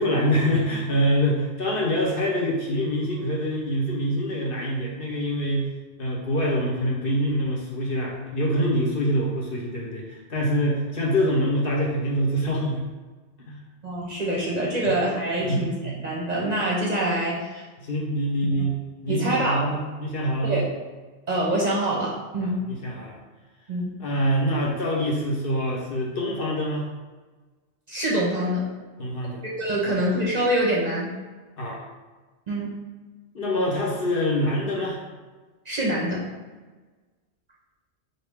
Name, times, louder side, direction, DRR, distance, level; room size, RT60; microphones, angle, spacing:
voice 1, 0.0-5.7 6.0-12.9 13.5-13.6 15.4-16.0 17.8-18.8 19.0-20.6 22.4-23.2 24.0-26.9 29.0-29.4 31.6-31.8 33.3-35.0, equal, 55° left, -2 dB, 0.9 m, -25 dB
voice 2, 13.8-17.6 19.1-19.7 20.4-20.7 21.3-22.6 23.7-23.9 27.9-28.7 29.6-31.1 32.5-32.7 35.7-36.2, right 1 dB, 45° right, -4 dB, 0.7 m, -25 dB
4.0 x 2.8 x 3.4 m, 1.3 s
omnidirectional pair, 1.2 m